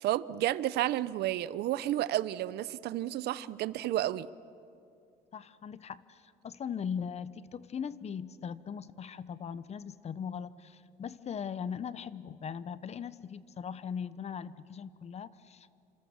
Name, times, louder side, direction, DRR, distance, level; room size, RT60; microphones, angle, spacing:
voice 1, 0.0-4.3, right 14 dB, 75° right, 17 dB, 0.8 m, -31 dB
voice 2, 5.3-15.7, left 7 dB, 40° left, 16 dB, 0.9 m, -39 dB
29.0 x 26.5 x 7.3 m, 2.6 s
cardioid pair, 110°, 17 cm